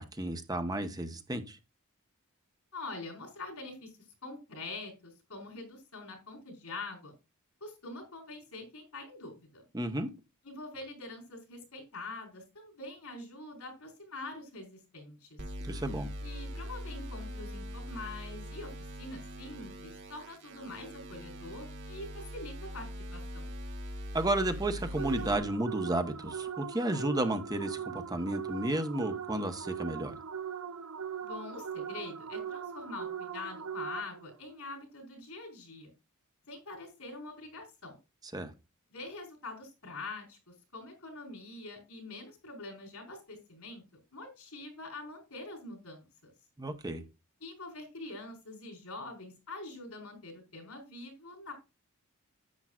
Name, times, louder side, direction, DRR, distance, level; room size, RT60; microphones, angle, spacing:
voice 1, 0.0-1.6 9.7-10.1 15.6-16.1 24.1-30.2 38.3-38.5 46.6-47.0, right 1 dB, 20° right, 1.0 m, -32 dB
voice 2, 2.7-3.9 4.2-7.1 7.6-9.6 10.4-15.4 16.2-18.7 19.0-23.5 31.2-35.9 36.5-38.0 38.9-43.8 44.1-46.3 47.4-51.5, left 2 dB, 90° left, 4.6 m, -44 dB
sound 1, 15.4-25.4, equal, 60° right, 3.0 m, -42 dB
sound 2, 25.0-34.4, right 7 dB, 80° right, 0.7 m, -40 dB
10.5 x 8.8 x 2.4 m
head